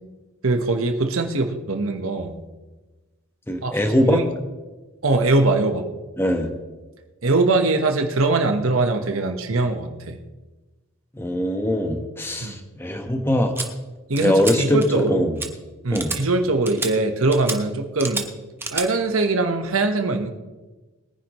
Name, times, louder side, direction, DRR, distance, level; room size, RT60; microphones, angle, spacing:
voice 1, 0.4-2.4 3.6-4.3 5.0-5.9 7.2-10.2 12.4-12.6 14.1-15.4 15.8-18.2 18.7-20.3, right 2 dB, 75° right, 5 dB, 1.2 m, -22 dB
voice 2, 3.5-4.2 6.2-6.5 11.1-13.7 14.2-15.4 15.9-16.1, left 1 dB, 10° left, 4 dB, 1.1 m, -22 dB
sound 1, 13.6-13.7 14.2-14.6 14.8-15.1 15.4-15.5 15.9-16.2 16.7-16.9 17.3-17.6 18.0-18.3 18.6-18.9, right 3 dB, 10° right, 1.0 m, -29 dB
22.0 x 10.0 x 3.1 m, 1.2 s
head